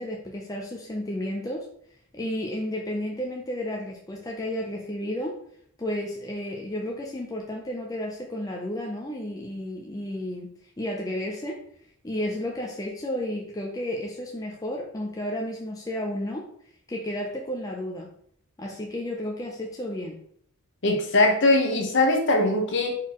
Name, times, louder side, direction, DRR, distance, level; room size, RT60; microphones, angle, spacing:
voice 1, 0.0-1.7 2.1-5.4 5.8-11.6 12.0-16.5 16.9-18.1 18.6-20.2, left 1 dB, 15° left, -1 dB, 0.5 m, -32 dB
voice 2, 20.8-23.0, left 2 dB, 55° left, 2 dB, 0.9 m, -21 dB
4.4 x 3.9 x 3.0 m, 0.64 s
head